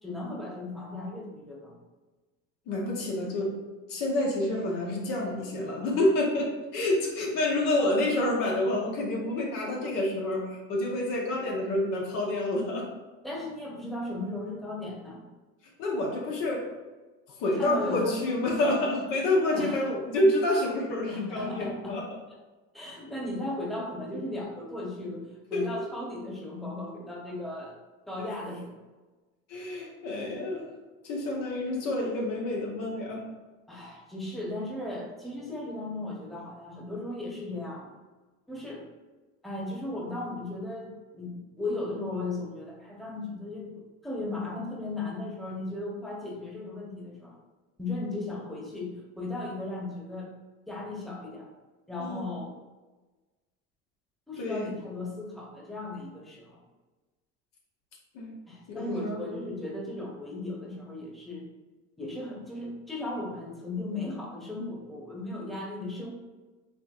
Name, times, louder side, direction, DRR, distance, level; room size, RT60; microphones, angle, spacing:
voice 1, 0.0-1.8 13.2-15.2 17.6-18.3 19.5-19.9 21.1-22.0 22.7-27.7 28.1-28.7 33.7-37.9 38.5-38.9 39.4-43.7 44.0-47.4 47.8-50.3 50.7-51.5 51.9-52.5 54.3-56.6 58.5-61.4 62.0-66.1, left 2 dB, ahead, -3 dB, 1.0 m, -36 dB
voice 2, 2.7-3.5 3.9-12.9 15.8-16.7 17.4-22.1 25.5-25.7 29.5-30.7 31.0-33.3 52.0-52.3 54.4-54.7 58.1-58.3 58.7-59.2, left 1 dB, 70° left, -1 dB, 1.1 m, -28 dB
4.7 x 3.0 x 2.5 m, 1.2 s
supercardioid pair, 80°, 34 cm